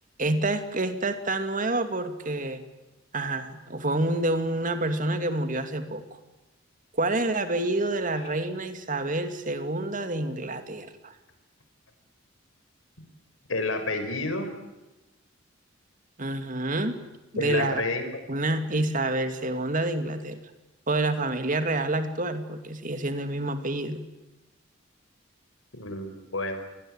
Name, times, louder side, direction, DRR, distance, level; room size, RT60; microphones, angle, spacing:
voice 1, 0.2-2.6 3.1-6.2 6.9-11.1 16.2-16.9 17.3-17.8 18.3-20.4 20.9-24.0, right 2 dB, 40° right, 8 dB, 2.5 m, -28 dB
voice 2, 13.5-14.5 17.3-18.1 25.7-26.5, left 2 dB, 85° left, 7 dB, 5.4 m, -29 dB
28.0 x 21.5 x 9.0 m, 1.0 s
head